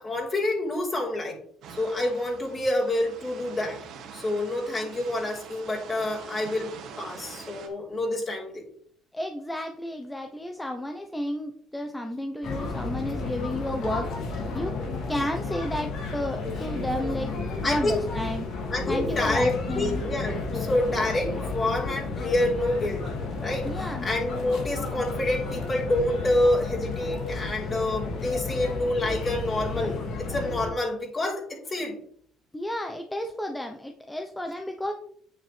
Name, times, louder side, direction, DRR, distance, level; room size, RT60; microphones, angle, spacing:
voice 1, 0.0-1.4 1.7-3.8 4.1-8.7 17.6-18.0 18.7-23.1 23.4-32.0, left 1 dB, 35° left, -3 dB, 4.1 m, -27 dB
sound 1, 1.6-7.7, right 6 dB, 70° right, 2.0 m, -44 dB
voice 2, 9.1-14.8 15.1-17.3 17.7-18.5 18.9-20.0 23.6-24.1 32.5-34.9, left 1 dB, 10° left, 4 dB, 1.0 m, -32 dB
sound 2, 12.4-30.7, left 3 dB, 65° left, 3.0 m, -32 dB
9.1 x 7.0 x 3.5 m, 0.63 s
supercardioid pair, 75°, 0 cm